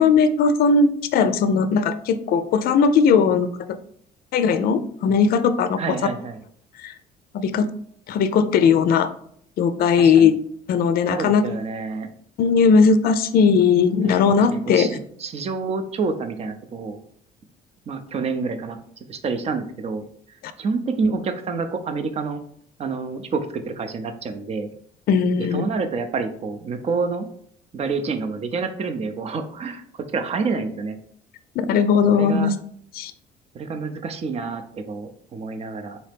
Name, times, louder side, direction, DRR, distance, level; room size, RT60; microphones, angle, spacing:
voice 1, 0.0-3.5 4.3-5.8 6.8-6.9 7.3-7.7 8.1-9.1 9.6-10.3 10.7-11.4 12.4-14.9 25.1-25.7 31.6-32.5 32.9-33.1, left 5 dB, 65° left, 12 dB, 0.4 m, -18 dB
voice 2, 5.8-6.4 10.0-10.3 11.1-12.1 14.2-17.0 17.9-18.8 19.1-20.0 20.6-22.4 22.8-24.7 25.5-27.3 27.7-31.0 32.1-32.5 33.5-36.0, right 4 dB, 40° right, 7 dB, 0.6 m, -28 dB
4.1 x 2.7 x 3.4 m, 0.64 s
cardioid pair, 110°, 17 cm